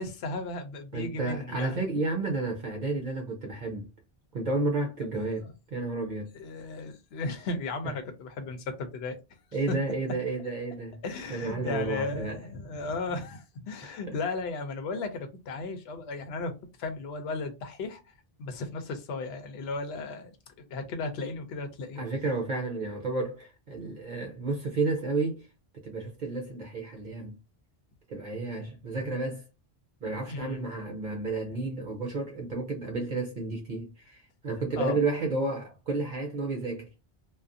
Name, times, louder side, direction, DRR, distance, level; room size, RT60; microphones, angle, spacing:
voice 1, 0.0-1.8 6.3-9.2 11.0-18.1 18.4-20.3 20.7-22.0 30.3-30.7 34.8-35.0, left 3 dB, 80° left, 0.8 m, -35 dB
voice 2, 0.9-3.9 4.3-5.4 5.7-6.3 9.5-11.0 11.3-12.4 13.8-14.2 22.0-25.5 25.7-27.3 28.1-29.4 30.0-36.9, right 3 dB, 55° right, 0.7 m, -31 dB
2.4 x 2.3 x 2.5 m
omnidirectional pair, 1.0 m